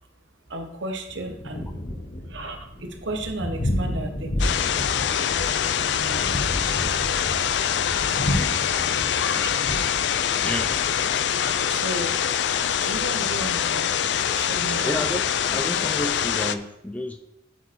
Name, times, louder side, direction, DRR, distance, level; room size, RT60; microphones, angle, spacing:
voice 1, 0.5-1.7 2.3-4.5 5.9-6.3 9.2-9.9 11.7-12.2 12.6-14.0 14.2-14.9, right 2 dB, 85° right, 4 dB, 1.2 m, -34 dB
Thunder, 1.1-16.4, left 1 dB, 45° left, 1.1 m, -32 dB
sound 1, 3.2-8.7, equal, 25° left, 1.6 m, -46 dB
sound 2, 4.4-16.5, left 9 dB, 70° left, 0.4 m, -24 dB
voice 2, 10.4-10.8 14.8-15.2 15.5-17.2, left 1 dB, 10° left, 6 dB, 0.5 m, -30 dB
7.9 x 5.1 x 4.6 m, 0.78 s
head